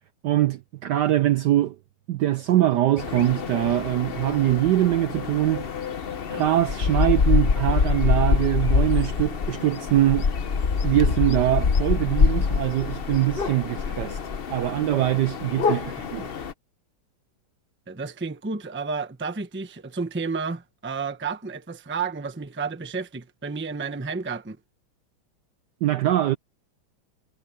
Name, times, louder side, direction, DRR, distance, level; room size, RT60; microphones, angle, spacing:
voice 1, 0.2-1.8 2.1-5.7 6.3-10.3 10.8-14.2 14.5-16.3 25.8-26.4, right 13 dB, 70° right, 1.0 m, -23 dB
sound 1, 3.0-16.5, left 5 dB, 55° left, 0.6 m, -25 dB
voice 2, 15.7-16.0 17.9-24.6, right 4 dB, 10° right, 0.6 m, -31 dB
omnidirectional pair, 2.3 m